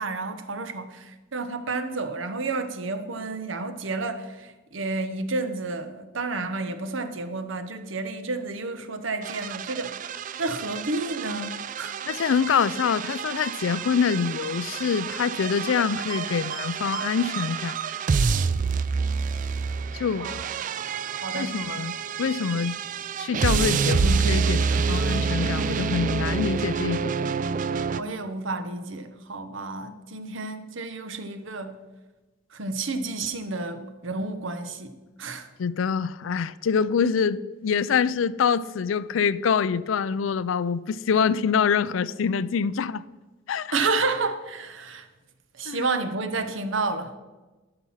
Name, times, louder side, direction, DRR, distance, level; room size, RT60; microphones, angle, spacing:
voice 1, 0.0-10.0 10.4-11.9 20.2-20.5 21.2-21.6 27.9-31.8 32.5-35.5 43.7-45.1 45.5-47.1, right 3 dB, 70° right, 0.9 m, -31 dB
sound 1, 9.2-28.0, right 5 dB, 40° right, 0.3 m, -28 dB
voice 2, 12.1-17.8 19.9-20.3 21.3-22.8 23.2-27.1 35.6-43.0 43.5-43.7 45.7-45.9, left 6 dB, 80° left, 0.4 m, -25 dB
12.5 x 6.0 x 5.6 m
head